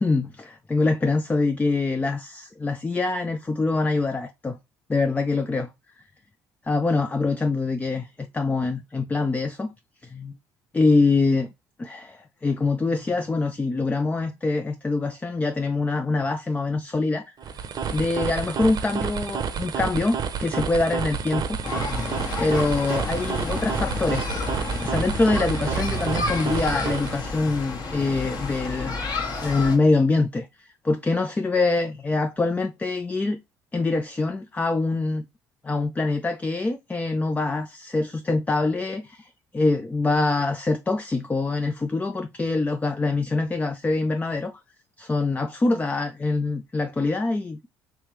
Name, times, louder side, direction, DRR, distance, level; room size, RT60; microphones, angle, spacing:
voice 1, 0.0-4.6 4.9-5.7 6.7-9.7 10.0-10.3 10.7-11.5 11.8-17.3 17.9-21.6 22.4-24.3 24.8-29.1 29.4-30.5 30.8-33.4 33.7-35.2 35.6-44.5 45.0-47.7, left 3 dB, 15° left, 0.4 m, -24 dB
sound 1, 17.4-27.3, right 7 dB, 45° right, 0.7 m, -30 dB
sound 2, 21.6-29.8, left 3 dB, 50° left, 1.3 m, -30 dB
3.3 x 3.1 x 3.0 m
hypercardioid pair, 65°, 9 cm